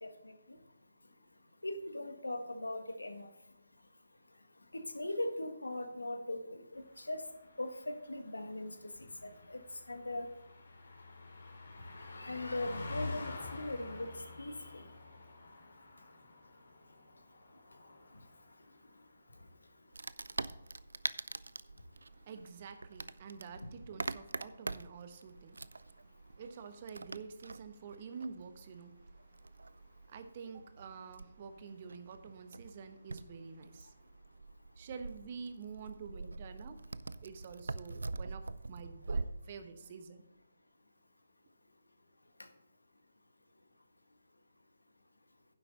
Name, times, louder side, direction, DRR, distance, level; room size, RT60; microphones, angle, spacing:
voice 1, 0.0-0.3 1.6-3.3 4.7-7.2 7.6-8.7 9.2-9.6 9.9-10.2 12.1-14.1 14.4-14.8, left 1 dB, 85° left, 7 dB, 1.5 m, -39 dB
Car passing by, 6.8-18.8 19.1-19.3, left 3 dB, 65° left, 2.8 m, -48 dB
Wood, 19.9-39.2, right 3 dB, 75° right, 0.4 m, -44 dB
voice 2, 22.0-34.1 34.8-36.8 37.2-40.2, right 5 dB, 40° right, 9 dB, 1.0 m, -48 dB
10.0 x 7.6 x 4.1 m, 0.91 s
figure-of-eight pair, 145°, 0 cm